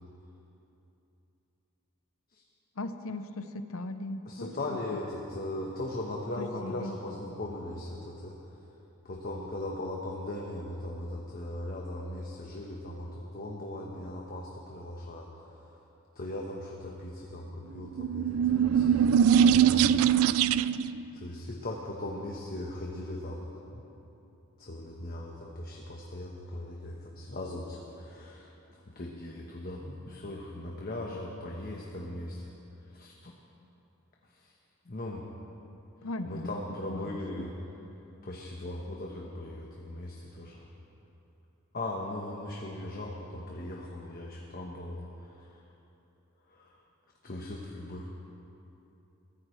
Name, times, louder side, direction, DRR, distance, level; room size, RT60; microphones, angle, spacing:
voice 1, 2.8-4.5 6.4-6.9 36.0-36.5 36.9-37.5, left 2 dB, 80° left, 9 dB, 0.8 m, -38 dB
voice 2, 4.2-8.6 9.0-15.8 16.1-19.9 21.1-23.8 24.6-32.5 32.8-33.3 34.2-34.5 34.8-35.2 36.3-37.5 38.2-40.7 41.7-45.6 46.5-46.8 47.2-48.1, left 1 dB, 45° left, -1 dB, 1.2 m, -39 dB
sound 1, 17.8-20.9, right 8 dB, 80° right, 0.3 m, -22 dB
22.5 x 15.5 x 3.3 m, 2.9 s
head